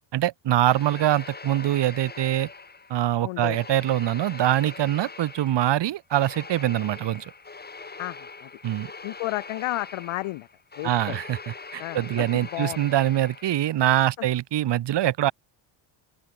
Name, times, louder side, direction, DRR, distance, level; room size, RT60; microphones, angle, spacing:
voice 1, 0.1-2.5 2.9-7.3 8.6-8.9 10.8-15.3, right 13 dB, 55° right, 2.6 m, -24 dB
sound 1, 0.7-3.1 3.5-13.8, left 4 dB, 20° left, 5.6 m, -42 dB
voice 2, 3.2-3.6 8.0-8.5 9.0-10.5 10.8-11.2 11.8-12.8, left 18 dB, 75° left, 3.2 m, -32 dB
open air
cardioid pair, 125°, 50 cm